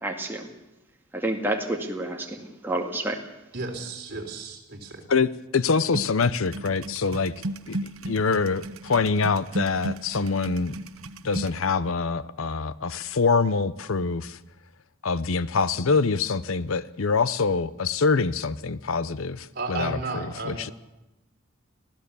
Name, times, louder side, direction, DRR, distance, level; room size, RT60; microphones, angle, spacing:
voice 1, 0.0-0.5 1.1-3.2, right 1 dB, 10° right, 1 dB, 2.1 m, -29 dB
voice 2, 3.5-5.0 19.5-20.6, right 3 dB, 50° right, 2 dB, 3.7 m, -33 dB
voice 3, 5.1-7.3 7.7-7.8 8.1-10.7 11.2-14.4 15.0-20.7, left 4 dB, 80° left, 17 dB, 0.7 m, -25 dB
sound 1, 5.9-11.6, right 1 dB, 90° right, 1.1 m, -35 dB
25.0 x 16.5 x 6.9 m, 0.97 s
head